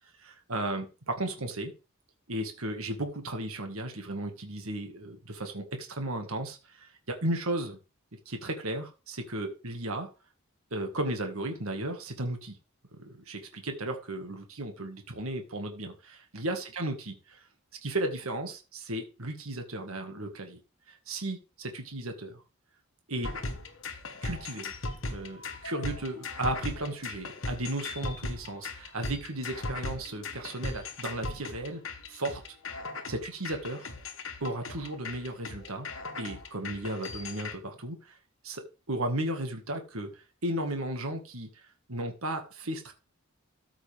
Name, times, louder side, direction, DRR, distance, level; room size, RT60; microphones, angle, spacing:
voice 1, 0.2-1.7 2.3-7.8 8.3-10.1 10.7-12.6 12.9-17.4 17.8-20.6 20.9-22.4 23.1-23.3 24.2-24.7 25.1-32.4 33.1-33.9 34.4-35.9 36.2-38.2 38.4-40.1 40.4-41.5 41.9-42.9, right 1 dB, 80° right, 5 dB, 1.9 m, -35 dB
sound 1, 23.2-37.6, left 2 dB, 65° left, 1.4 m, -38 dB
13.5 x 6.1 x 3.6 m, 0.31 s
head